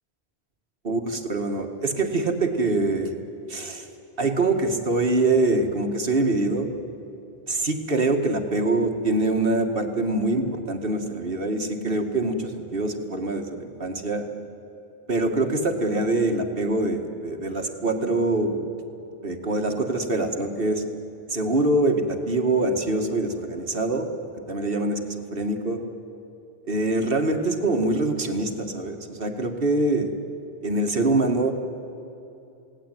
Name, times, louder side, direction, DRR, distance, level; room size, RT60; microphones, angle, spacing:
voice 1, 0.8-3.1 3.5-3.9 4.2-6.8 7.5-14.3 15.1-18.7 19.2-20.8 21.3-25.8 26.7-30.1 30.6-31.5, right 2 dB, 60° right, 4 dB, 2.3 m, -24 dB
29.0 x 18.0 x 9.3 m, 2.8 s
omnidirectional pair, 1.1 m